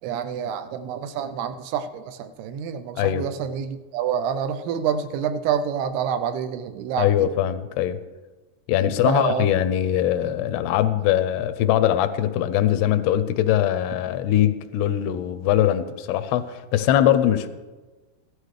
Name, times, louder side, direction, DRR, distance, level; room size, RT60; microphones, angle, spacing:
voice 1, 0.0-7.1 9.1-9.5, right 8 dB, 85° right, 10 dB, 2.7 m, -27 dB
voice 2, 7.0-8.0 8.7-17.5, left 11 dB, 85° left, 12 dB, 2.6 m, -21 dB
16.0 x 13.0 x 3.2 m, 1.3 s
omnidirectional pair, 4.7 m